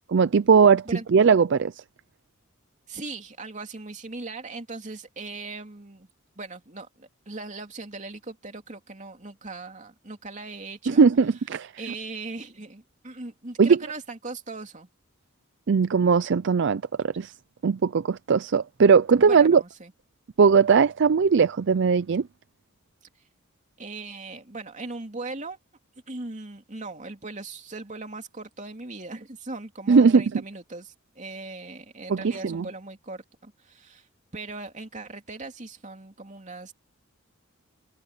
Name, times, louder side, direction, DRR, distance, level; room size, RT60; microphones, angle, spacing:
voice 1, 0.1-1.7 10.9-11.7 13.6-13.8 15.7-17.3 17.6-19.6 20.4-22.3 29.9-30.2 32.1-32.7, right 5 dB, 55° right, 0.4 m, -19 dB
voice 2, 2.9-6.1 6.4-11.0 11.8-14.9 19.2-19.9 23.8-25.6 26.1-34.1 34.3-36.7, right 3 dB, 35° right, 2.9 m, -39 dB
head